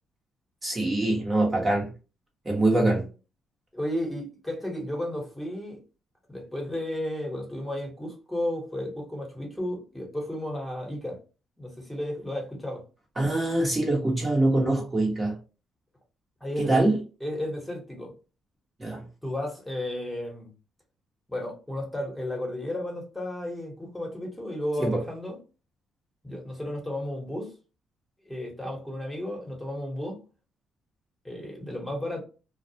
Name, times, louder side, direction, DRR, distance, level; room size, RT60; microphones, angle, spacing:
voice 1, 0.6-1.9 2.4-3.1 13.2-15.4 16.6-17.0 18.8-19.0 24.8-25.0, right 2 dB, 25° right, 0.9 m, -24 dB
voice 2, 3.7-5.8 6.3-11.2 11.6-12.8 16.4-16.9 17.2-18.1 19.2-20.5 21.3-25.4 26.2-27.5 28.3-30.2 31.2-32.2, left 1 dB, 10° left, 1.1 m, -33 dB
2.3 x 2.1 x 2.7 m
cardioid pair, 90°, 0 cm